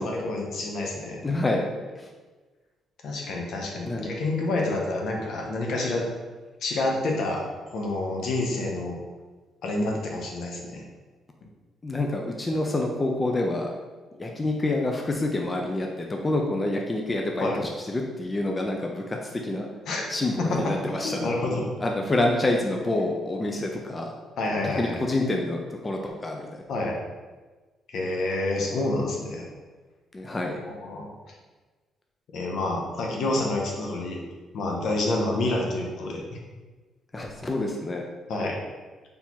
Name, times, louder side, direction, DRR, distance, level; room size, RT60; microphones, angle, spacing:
voice 1, 0.0-1.2 3.0-6.0 6.6-9.0 9.6-10.8 17.4-17.6 19.9-20.0 20.4-20.8 21.2-21.7 24.4-25.0 26.7-27.0 27.9-29.5 30.6-31.1 32.3-34.2 34.5-36.2 38.3-38.6, left 2 dB, 70° left, 0 dB, 0.8 m, -28 dB
voice 2, 1.2-1.6 2.0-2.1 3.9-4.1 11.8-13.7 14.2-19.7 20.1-21.3 21.8-24.1 24.6-26.6 30.1-30.6 37.1-38.1, left 2 dB, 25° left, 1 dB, 0.5 m, -27 dB
4.1 x 3.4 x 3.0 m, 1.3 s
cardioid pair, 90°, 0 cm